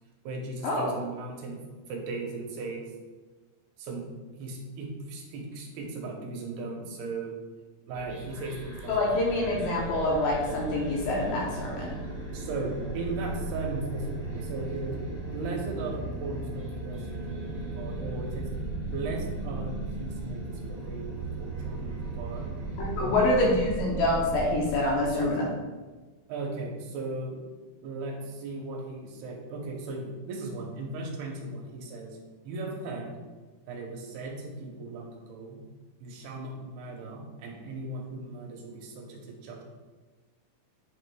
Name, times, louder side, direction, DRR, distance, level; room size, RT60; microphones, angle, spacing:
voice 1, 0.2-1.6 1.9-2.9 3.8-4.0 4.3-7.4 7.9-9.0 12.3-15.0 15.3-18.5 18.9-22.4 23.0-23.5 25.0-25.3 26.3-27.4 27.8-32.2 32.4-33.1 33.7-35.6 36.0-39.6, right 3 dB, 80° right, 0 dB, 2.8 m, -37 dB
sound 1, 7.9-25.3, right 3 dB, 55° right, 2.3 m, -36 dB
voice 2, 8.9-11.9 22.8-25.5, left 2 dB, 75° left, -3 dB, 2.2 m, -26 dB
9.2 x 4.9 x 2.3 m, 1.3 s
omnidirectional pair, 4.6 m